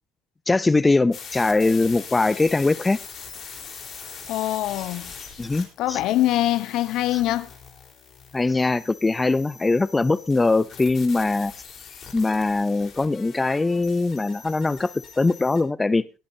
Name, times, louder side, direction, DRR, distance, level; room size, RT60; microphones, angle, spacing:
voice 1, 0.5-3.0 5.4-6.0 7.1-7.2 8.3-11.5 12.1-16.1, left 3 dB, 15° left, 0.5 m, -21 dB
sound 1, 1.1-15.6, left 6 dB, 50° left, 4.1 m, -42 dB
voice 2, 4.3-5.1 5.8-7.5, left 14 dB, 65° left, 0.9 m, -23 dB
20.5 x 10.5 x 2.8 m
supercardioid pair, 85°, 0 cm